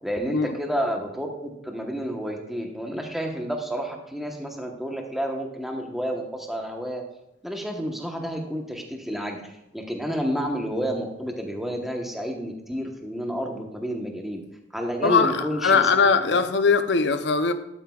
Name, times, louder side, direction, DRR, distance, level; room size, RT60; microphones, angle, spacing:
voice 1, 0.0-7.0 7.4-14.4 14.7-16.0 16.3-16.4, equal, ahead, 1.1 m, -30 dB
voice 2, 15.0-17.5, left 5 dB, 65° left, 0.6 m, -20 dB
12.5 x 8.3 x 2.4 m
head